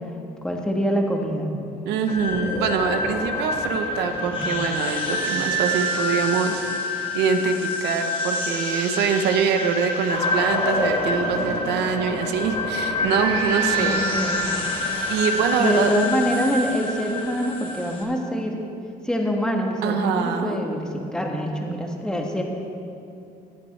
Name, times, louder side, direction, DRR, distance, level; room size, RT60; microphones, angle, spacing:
voice 1, 0.4-1.5 4.3-4.5 13.8-14.5 15.6-18.6 19.0-22.4, equal, 5° left, 1 dB, 1.6 m, -25 dB
voice 2, 1.8-6.6 6.9-14.0 15.1-15.9 19.8-20.6, right 6 dB, 85° right, 6 dB, 1.1 m, -24 dB
sound 1, 2.1-18.0, left 1 dB, 35° left, 3.2 m, -26 dB
15.5 x 10.5 x 4.3 m, 2.6 s
cardioid pair, 110°, 17 cm